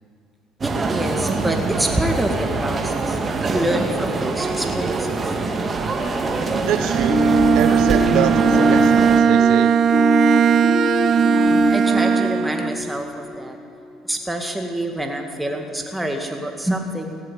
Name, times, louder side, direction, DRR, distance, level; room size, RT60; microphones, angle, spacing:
voice 1, 0.6-3.2 3.5-5.2 11.2-13.6 14.0-17.2, right 1 dB, 10° right, 3 dB, 2.1 m, -26 dB
sound 1, 0.6-9.2, right 3 dB, 35° right, 1.6 m, -24 dB
voice 2, 6.7-7.2 7.5-9.7, right 9 dB, 70° right, 8 dB, 0.8 m, -25 dB
Bowed string instrument, 6.8-12.9, right 8 dB, 55° right, 0.4 m, -18 dB
sound 2, 7.1-13.9, left 2 dB, 20° left, 0.6 m, -23 dB
16.5 x 7.5 x 9.3 m, 2.6 s
supercardioid pair, 70°, 0 cm